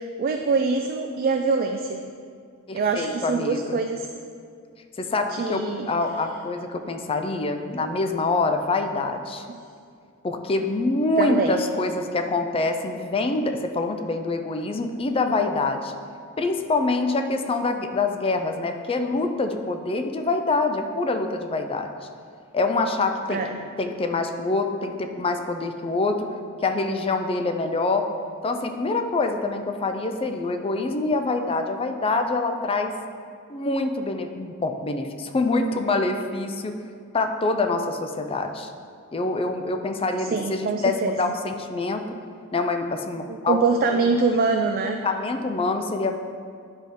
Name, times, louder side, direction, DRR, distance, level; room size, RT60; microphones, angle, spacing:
voice 1, 0.0-2.0 2.7-4.1 5.3-5.9 9.5-9.6 11.2-11.5 23.3-23.6 40.2-41.3 43.3-45.0, right 4 dB, 45° right, 4 dB, 0.3 m, -24 dB
voice 2, 2.7-3.8 5.0-9.4 10.2-15.9 16.4-21.9 22.5-26.3 26.6-28.0 28.4-32.9 33.5-36.7 37.1-38.7 39.1-42.0 42.5-43.6 43.9-44.0 45.0-46.2, left 3 dB, 25° left, 6 dB, 0.4 m, -25 dB
10.5 x 3.5 x 3.8 m, 2.2 s
head